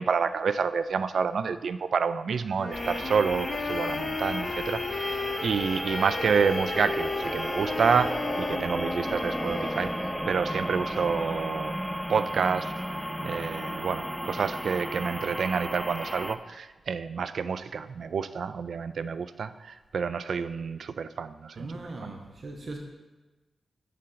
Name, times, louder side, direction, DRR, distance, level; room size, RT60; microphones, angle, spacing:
voice 1, 0.0-11.7 12.1-21.7 22.0-22.1, right 5 dB, 75° right, 13 dB, 0.3 m, -29 dB
sound 1, 2.6-10.0, left 4 dB, 65° left, 0.5 m, -34 dB
sound 2, 2.7-16.4, equal, ahead, 0.4 m, -33 dB
voice 2, 21.6-22.8, right 2 dB, 50° right, 1 dB, 0.8 m, -39 dB
6.7 x 5.1 x 5.6 m, 1.2 s
wide cardioid pair, 125°, 0 cm